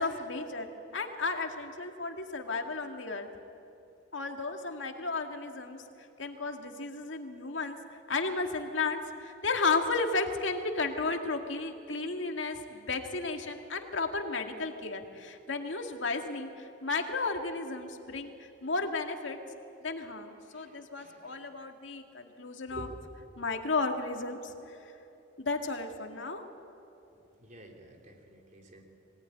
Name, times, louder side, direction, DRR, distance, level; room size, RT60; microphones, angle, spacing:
voice 1, 0.0-3.3 4.1-5.8 6.2-7.8 8.1-19.4 19.8-22.9 23.4-24.9 25.4-26.4, left 3 dB, 75° left, 4 dB, 2.1 m, -33 dB
voice 2, 20.4-21.5 22.7-22.9 27.1-28.8, right 1 dB, 40° right, 2 dB, 3.4 m, -49 dB
24.0 x 18.0 x 9.9 m, 2.9 s
head